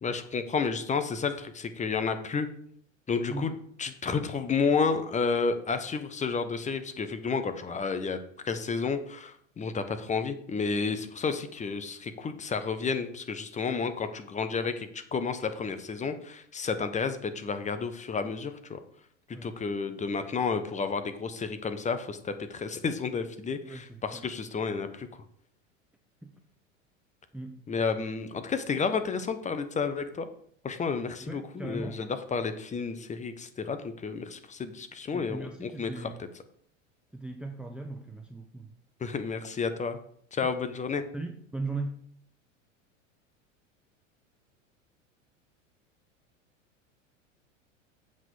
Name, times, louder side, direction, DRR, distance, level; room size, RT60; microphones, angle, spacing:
voice 1, 0.0-2.5 3.1-3.5 3.8-18.8 19.3-25.1 27.7-30.3 30.6-36.1 39.0-40.0 40.3-41.0, left 5 dB, 20° left, 9 dB, 1.0 m, -31 dB
voice 2, 23.6-24.2 26.2-26.3 27.3-27.6 31.2-32.0 35.1-36.2 37.1-38.7 41.1-42.0, right 2 dB, 5° right, 4 dB, 0.6 m, -38 dB
7.6 x 6.0 x 6.2 m, 0.64 s
figure-of-eight pair, 85°, 39 cm